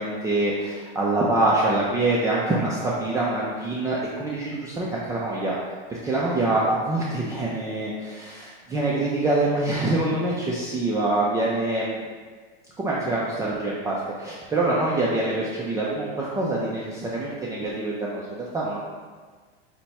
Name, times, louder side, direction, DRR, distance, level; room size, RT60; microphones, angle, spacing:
voice 1, 0.0-5.6 5.9-12.1 12.8-18.8, right 2 dB, 10° right, -6 dB, 0.4 m, -25 dB
5.7 x 2.2 x 4.1 m, 1.5 s
supercardioid pair, 130°, 32 cm